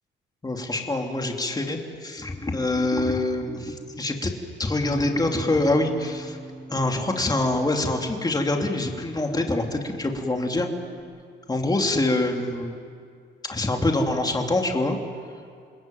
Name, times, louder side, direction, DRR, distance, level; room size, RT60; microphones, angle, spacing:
voice 1, 0.4-4.3 4.6-6.4 6.7-10.7 11.5-12.7 13.4-15.0, left 2 dB, 20° left, 2 dB, 3.1 m, -25 dB
Bass guitar, 4.8-11.0, right 2 dB, 25° right, 6.1 m, -41 dB
29.0 x 21.0 x 9.2 m, 2.2 s
cardioid pair, 90°, 20 cm